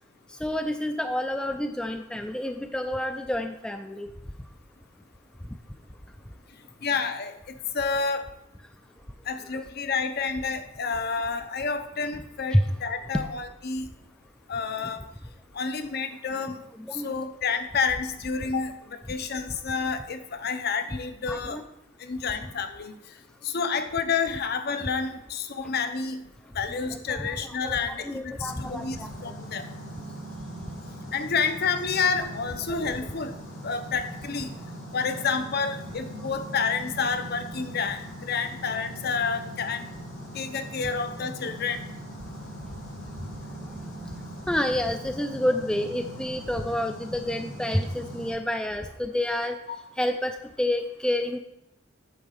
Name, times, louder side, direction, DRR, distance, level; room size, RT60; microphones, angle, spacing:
voice 1, 0.4-4.1 12.5-12.6 13.1-13.2 14.8-14.9 16.8-17.1 21.3-21.6 26.8-29.3 32.8-32.9 43.7-43.8 44.5-49.6 50.0-51.4, left 1 dB, 5° left, 6 dB, 0.4 m, -29 dB
voice 2, 6.8-8.2 9.3-13.9 14.5-15.0 15.5-16.6 16.9-21.6 22.0-23.0 23.4-26.2 26.5-29.0 29.2-29.6 31.1-33.3 33.6-34.5 34.9-39.9 40.3-41.9 49.7-49.8, left 5 dB, 50° left, 9 dB, 0.7 m, -29 dB
sound 1, 28.4-48.3, right 1 dB, 90° left, 3.7 m, -40 dB
8.6 x 4.0 x 6.5 m, 0.84 s
head